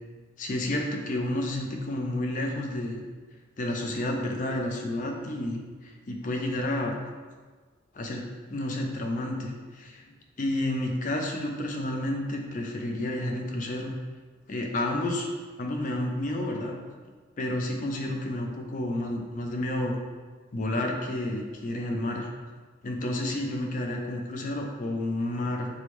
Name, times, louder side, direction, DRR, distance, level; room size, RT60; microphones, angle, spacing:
voice 1, 0.4-3.0 3.6-6.9 7.9-8.2 8.5-10.0 10.4-13.9 14.5-15.3 15.6-16.8 17.4-20.0 20.5-22.3 22.8-25.7, left 1 dB, 40° left, 1 dB, 0.4 m, -30 dB
4.5 x 2.1 x 3.1 m, 1.5 s
head